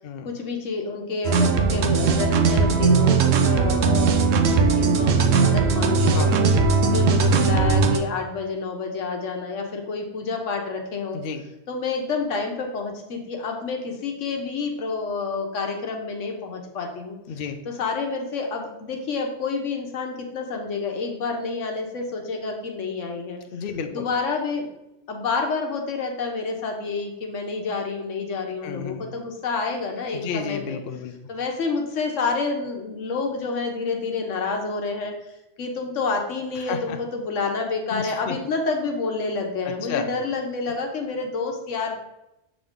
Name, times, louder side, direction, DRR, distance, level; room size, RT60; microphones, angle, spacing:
voice 1, 0.2-6.3 6.8-11.2 11.7-17.2 17.6-23.4 23.9-24.7 25.1-30.8 31.3-35.3 35.6-42.0, left 4 dB, 90° left, 3 dB, 1.3 m, -28 dB
sound 1, 1.2-8.0, right 4 dB, 90° right, 1.0 m, -19 dB
voice 2, 6.1-6.4 11.1-11.4 17.3-17.6 23.5-24.1 28.6-29.1 30.1-31.1 36.6-37.0 37.9-38.4 39.6-40.1, left 6 dB, 60° left, 6 dB, 0.7 m, -31 dB
7.0 x 3.8 x 3.6 m, 0.90 s
omnidirectional pair, 1.3 m